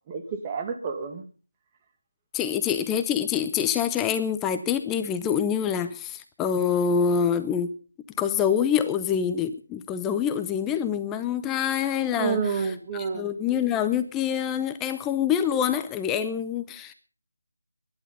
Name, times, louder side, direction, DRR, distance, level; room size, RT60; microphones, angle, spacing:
voice 1, 0.1-1.2 12.1-13.3, right 5 dB, 20° right, 6 dB, 2.2 m, -29 dB
voice 2, 2.3-7.7 8.2-12.6 12.9-16.9, left 8 dB, 10° left, 10 dB, 0.7 m, -26 dB
21.5 x 11.0 x 5.4 m, 0.38 s
figure-of-eight pair, 165°, 0 cm